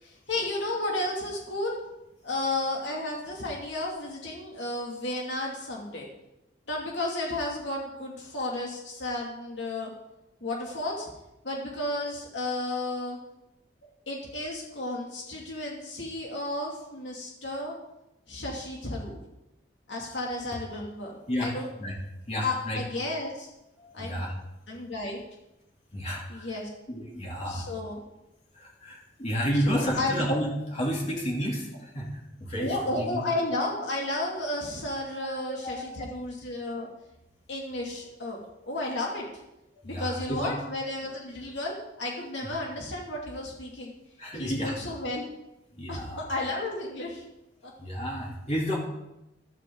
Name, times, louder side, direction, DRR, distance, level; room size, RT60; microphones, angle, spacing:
voice 1, 0.0-1.8 2.2-6.1 6.7-9.9 10.4-11.1 11.4-13.2 14.1-17.8 18.3-19.2 19.9-21.7 22.4-23.5 23.9-24.2 24.7-25.2 26.3-26.7 27.5-28.0 29.6-30.2 32.6-36.9 37.5-38.4 38.7-39.3 39.8-43.9 44.3-45.2 45.9-47.2 47.6-47.7, left 2 dB, 70° left, -2 dB, 2.5 m, -33 dB
voice 2, 22.3-22.8 23.8-24.3 25.9-26.5 26.9-27.7 28.5-33.2 35.2-35.9 39.8-40.5 44.2-44.8 45.8-46.2 47.8-48.8, equal, 35° left, -3 dB, 3.1 m, -31 dB
14.0 x 12.5 x 3.9 m, 0.91 s
head